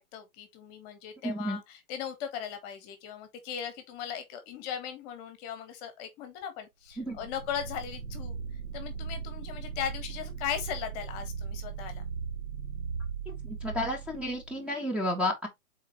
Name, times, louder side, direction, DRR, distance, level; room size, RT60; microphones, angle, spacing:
voice 1, 0.0-8.3 8.7-12.0, left 9 dB, 30° left, 1.5 m, -38 dB
voice 2, 1.2-1.6 7.0-7.2 13.4-15.5, left 1 dB, 5° right, 1.5 m, -31 dB
sound 1, 6.9-14.6, right 6 dB, 70° right, 1.4 m, -38 dB
7.3 x 4.2 x 3.3 m
hypercardioid pair, 135°, 43 cm